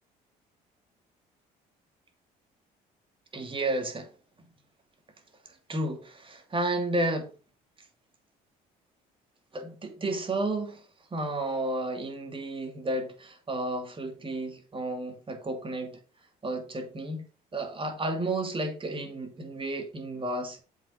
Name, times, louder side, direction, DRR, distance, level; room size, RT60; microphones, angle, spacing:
voice 1, 3.3-4.1 5.7-7.3 9.5-10.8 11.1-16.0 16.4-17.3 17.5-20.6, right 2 dB, 30° right, 2.7 m, -32 dB
7.4 x 5.7 x 5.1 m
supercardioid pair, 70°, 18 cm